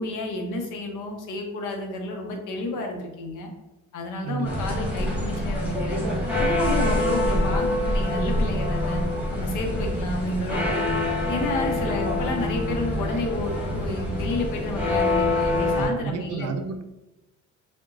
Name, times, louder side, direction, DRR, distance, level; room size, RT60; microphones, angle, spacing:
voice 1, 0.0-3.5 3.9-6.0 6.4-9.0 9.3-10.9 11.3-16.5, left 2 dB, 85° left, 2 dB, 0.7 m, -31 dB
voice 2, 4.2-4.7 15.7-16.8, right 5 dB, 60° right, 7 dB, 0.4 m, -31 dB
sound 1, 4.4-15.9, left 1 dB, 5° right, 1.1 m, -25 dB
3.8 x 2.2 x 2.4 m, 1.0 s
cardioid pair, 90°, 30 cm